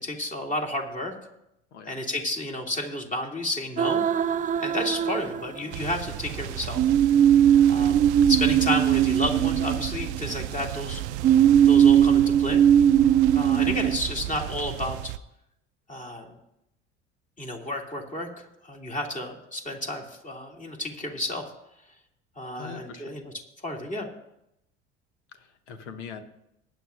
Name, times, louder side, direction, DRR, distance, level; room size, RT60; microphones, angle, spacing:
voice 1, 0.0-1.1 1.9-4.0 4.6-6.8 7.7-11.0 11.6-12.6 13.3-15.1 15.9-16.4 17.4-18.3 18.6-21.5 22.4-23.3 23.6-24.1, left 1 dB, 20° left, 1 dB, 2.6 m, -31 dB
sound 1, 3.8-5.9 6.8-10.5 11.2-14.0, right 9 dB, 25° right, 0.4 m, -20 dB
sound 2, 5.7-15.2, right 13 dB, 75° right, 0.5 m, -34 dB
voice 2, 22.5-23.1 25.3-26.2, left 6 dB, 80° left, 9 dB, 1.2 m, -42 dB
20.5 x 9.7 x 2.5 m, 0.83 s
hypercardioid pair, 65°, 34 cm